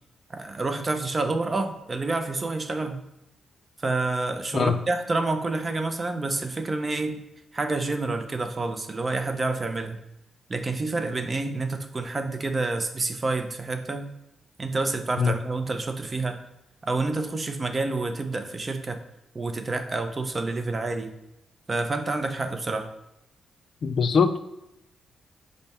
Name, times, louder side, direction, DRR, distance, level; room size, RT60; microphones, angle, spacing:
voice 1, 0.3-3.0 3.8-7.2 7.5-10.0 10.5-14.1 14.6-16.4 16.8-19.0 19.3-21.1 21.7-22.9, right 3 dB, 30° right, 7 dB, 0.5 m, -28 dB
voice 2, 23.8-24.4, left 5 dB, 60° left, 10 dB, 0.4 m, -22 dB
5.1 x 2.1 x 4.2 m, 0.88 s
cardioid pair, 95°, 0 cm